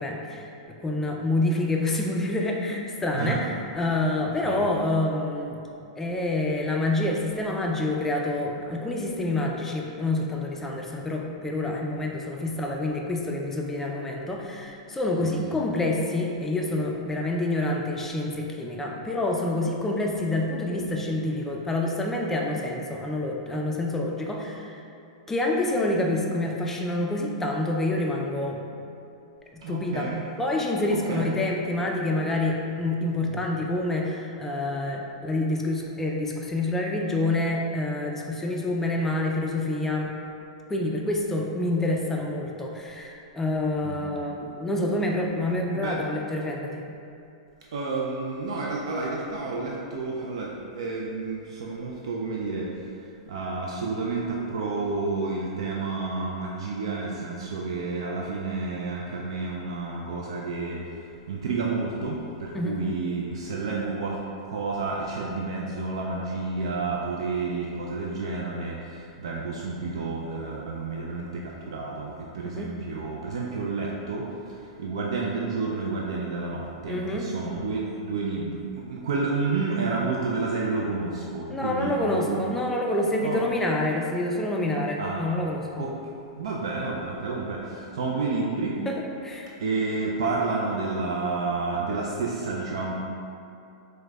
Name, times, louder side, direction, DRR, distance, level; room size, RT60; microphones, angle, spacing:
voice 1, 0.0-5.6 6.0-24.8 25.3-28.6 29.5-30.1 30.4-40.1 40.7-46.8 62.5-62.8 72.4-72.7 76.9-77.3 81.5-85.8 88.9-89.5, left 2 dB, 10° left, 0 dB, 0.3 m, -27 dB
voice 2, 29.6-30.2 31.1-31.4 33.2-33.4 43.8-44.0 45.7-46.0 47.7-52.7 53.3-60.8 61.3-64.2 64.4-74.2 74.8-82.4 83.2-83.4 85.0-85.3 85.8-85.9 86.4-88.8 89.6-92.9, right 3 dB, 75° right, -3 dB, 0.3 m, -30 dB
4.8 x 2.1 x 2.2 m, 2.6 s
hypercardioid pair, 120°, 3 cm